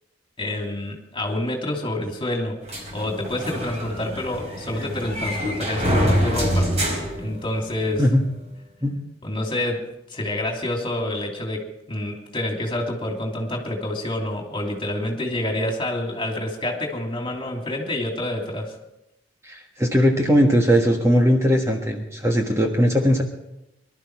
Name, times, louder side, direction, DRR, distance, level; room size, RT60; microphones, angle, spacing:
voice 1, 0.4-6.8 7.2-8.0 9.2-18.8, left 1 dB, 25° left, 2 dB, 2.9 m, -28 dB
sound 1, 2.7-7.9, equal, 35° right, 4.5 m, -25 dB
voice 2, 19.4-23.2, equal, 15° right, 1 dB, 1.4 m, -19 dB
23.5 x 12.5 x 4.8 m, 0.88 s
head